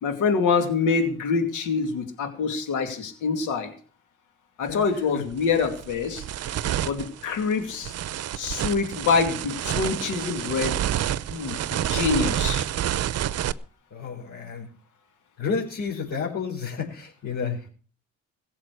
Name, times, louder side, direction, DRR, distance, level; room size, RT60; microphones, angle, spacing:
voice 1, 0.0-3.7 4.6-6.2 6.9-7.9 8.4-10.8 11.3-12.6, left 5 dB, 85° left, 7 dB, 2.4 m, -25 dB
voice 2, 4.7-5.2 13.9-14.7 15.4-17.7, left 5 dB, 60° left, -7 dB, 5.5 m, -31 dB
sound 1, 4.7-4.8 5.3-13.5, right 11 dB, 55° right, 0.7 m, -28 dB
16.0 x 7.3 x 8.2 m, 0.41 s
cardioid pair, 90°, 30 cm